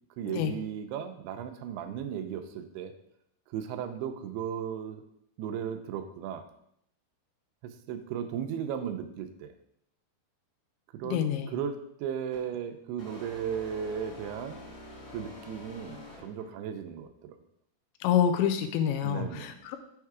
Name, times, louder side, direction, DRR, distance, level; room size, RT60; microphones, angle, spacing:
voice 1, 0.2-2.9 3.5-5.0 5.4-6.4 7.6-9.5 11.0-14.6 15.1-17.4 19.0-19.7, right 8 dB, 80° right, 7 dB, 2.4 m, -36 dB
voice 2, 11.0-11.5 18.0-19.8, left 9 dB, 90° left, 8 dB, 2.9 m, -27 dB
sound 1, 12.3-12.5 13.0-16.6, left 2 dB, 30° left, 1.2 m, -47 dB
7.2 x 4.6 x 4.7 m, 0.73 s
omnidirectional pair, 5.1 m